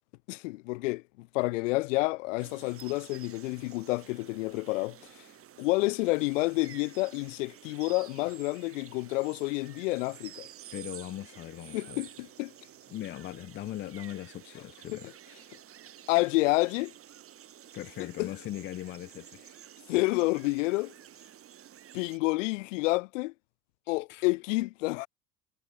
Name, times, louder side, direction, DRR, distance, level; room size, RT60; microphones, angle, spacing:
voice 1, 0.3-5.0 5.6-10.5 11.7-12.5 16.1-16.9 18.2-18.3 19.9-20.9 21.9-23.3 23.9-25.1, left 23 dB, 55° left, 0.8 m, -29 dB
sound 1, 2.4-22.2, right 10 dB, 30° right, 1.7 m, -51 dB
voice 2, 10.7-12.0 12.9-15.1 17.7-19.6 23.9-24.3, left 14 dB, 25° left, 0.6 m, -40 dB
figure-of-eight pair, 70°, 45 cm